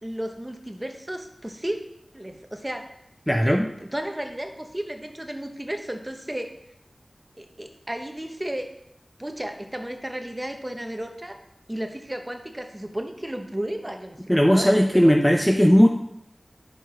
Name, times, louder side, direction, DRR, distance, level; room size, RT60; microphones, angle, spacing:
voice 1, 0.0-1.8 2.1-2.9 3.4-6.5 7.4-8.7 9.2-11.4 11.7-15.1, right 1 dB, 20° right, 5 dB, 0.9 m, -33 dB
voice 2, 3.3-3.7 14.3-15.9, equal, 5° left, 3 dB, 0.6 m, -17 dB
5.8 x 5.0 x 5.1 m, 0.77 s
wide cardioid pair, 55°, 0 cm